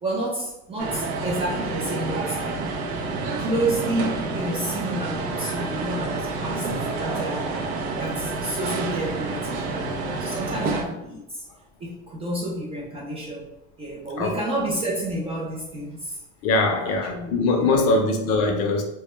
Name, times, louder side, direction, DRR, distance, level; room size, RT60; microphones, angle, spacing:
voice 1, 0.0-2.4 3.4-7.5 7.9-9.9 10.2-11.4 11.8-16.2 16.8-18.0, right 1 dB, 20° right, -4 dB, 0.3 m, -30 dB
sound 1, 0.8-10.8, right 3 dB, 85° right, 0.6 m, -29 dB
Laughter / Crowd, 6.4-9.1 9.8-9.9, right 2 dB, 60° right, 1.0 m, -36 dB
voice 2, 16.4-18.8, left 3 dB, 50° left, 3 dB, 0.5 m, -21 dB
2.2 x 2.1 x 2.9 m, 0.90 s
supercardioid pair, 130°, 33 cm